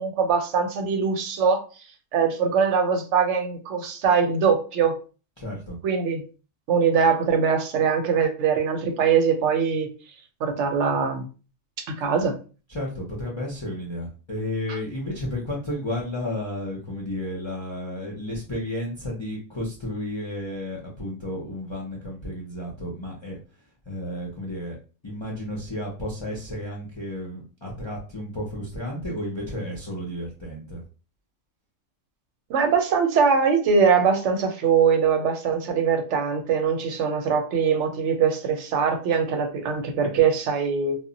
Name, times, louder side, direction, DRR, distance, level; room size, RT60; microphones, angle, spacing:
voice 1, 0.0-1.6 2.1-4.9 5.8-6.2 6.7-9.9 10.4-11.2 11.9-12.4 32.5-41.0, right 6 dB, 70° right, 5 dB, 0.9 m, -22 dB
voice 2, 5.4-5.8 12.7-23.4 23.9-24.8 25.0-30.8, left 1 dB, 40° left, -2 dB, 0.4 m, -32 dB
2.1 x 2.1 x 3.8 m, 0.35 s
omnidirectional pair, 1.3 m